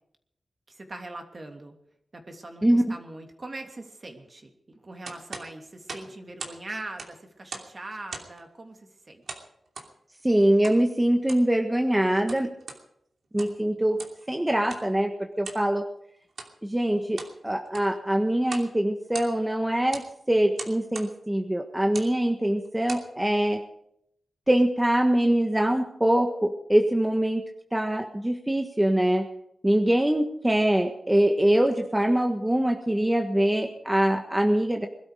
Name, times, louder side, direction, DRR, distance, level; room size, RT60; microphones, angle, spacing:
voice 1, 0.7-1.7 2.1-4.5 4.8-8.8 9.1-9.4, right 2 dB, 40° right, 4 dB, 2.9 m, -41 dB
voice 2, 2.6-3.0 10.2-12.5 13.3-14.0 14.3-15.9 16.6-23.6 24.5-27.4 27.7-29.3 29.6-34.9, right 1 dB, 10° right, 4 dB, 1.5 m, -23 dB
sound 1, 5.0-6.6 6.9-7.8 8.1-8.4 9.3-9.9 10.6-10.8 11.2-11.5 12.1-12.8 13.2-13.6 14.0-14.2 14.7-14.9 15.4-15.7 16.3-16.5 17.0-17.4 17.7-18.0 18.4-18.7 19.0-19.5 19.9-20.1 20.6-21.1 21.8-22.1 22.7-23.1, right 4 dB, 80° right, 2.8 m, -40 dB
21.5 x 12.5 x 5.0 m, 0.72 s
wide cardioid pair, 85°, 0 cm